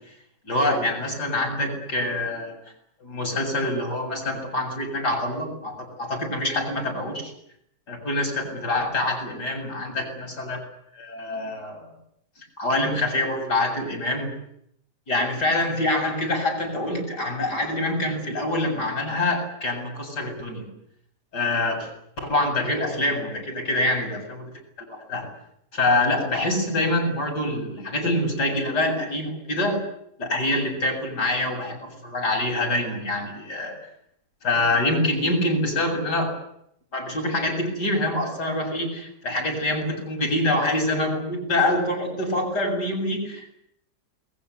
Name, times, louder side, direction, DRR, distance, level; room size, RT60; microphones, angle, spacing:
voice 1, 0.4-2.6 3.0-7.3 7.9-10.6 10.9-11.8 12.6-14.3 15.1-20.7 21.3-21.9 22.2-24.5 24.9-25.2 25.7-29.8 30.2-33.7 34.4-36.3 36.9-43.5, left 1 dB, 75° left, 3 dB, 8.6 m, -25 dB
29.5 x 21.5 x 8.3 m, 0.74 s
omnidirectional pair, 1.8 m